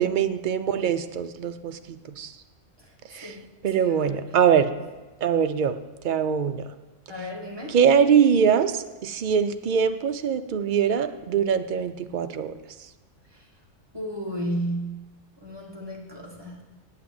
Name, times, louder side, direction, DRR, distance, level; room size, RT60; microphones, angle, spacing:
voice 1, 0.0-2.4 3.1-3.4 3.6-4.7 5.2-5.8 6.0-6.6 7.7-12.5, right 7 dB, 55° right, 9 dB, 0.6 m, -23 dB
voice 2, 3.8-4.3 7.1-7.8 13.3-13.4 13.9-15.1 15.4-16.6, equal, 20° right, -2 dB, 2.0 m, -33 dB
8.3 x 8.2 x 7.7 m, 1.2 s
omnidirectional pair, 1.4 m